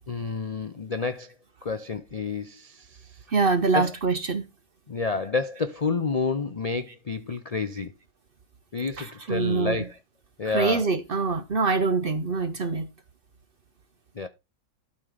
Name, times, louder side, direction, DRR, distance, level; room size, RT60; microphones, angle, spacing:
voice 1, 0.1-1.3 1.6-3.2 3.7-3.9 4.9-7.9 8.7-9.9 10.4-10.9 14.1-14.3, left 4 dB, 45° left, 0.4 m, -29 dB
voice 2, 3.3-4.4 9.0-9.8 10.5-12.9, right 4 dB, 50° right, 0.8 m, -25 dB
12.5 x 4.3 x 5.0 m
omnidirectional pair, 1.6 m